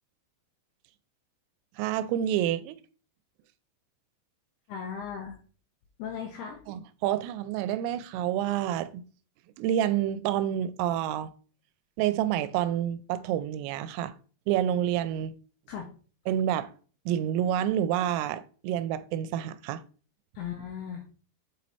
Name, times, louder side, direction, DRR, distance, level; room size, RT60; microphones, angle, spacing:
voice 1, 1.8-2.8 6.7-9.0 9.6-11.3 12.0-14.1 14.5-15.4 16.3-16.7 17.1-19.8, right 11 dB, 90° right, 3.2 m, -28 dB
voice 2, 4.7-5.4 6.0-6.6 15.7-15.9 20.4-21.0, left 7 dB, 75° left, 2.4 m, -37 dB
7.8 x 4.3 x 4.1 m
omnidirectional pair, 5.7 m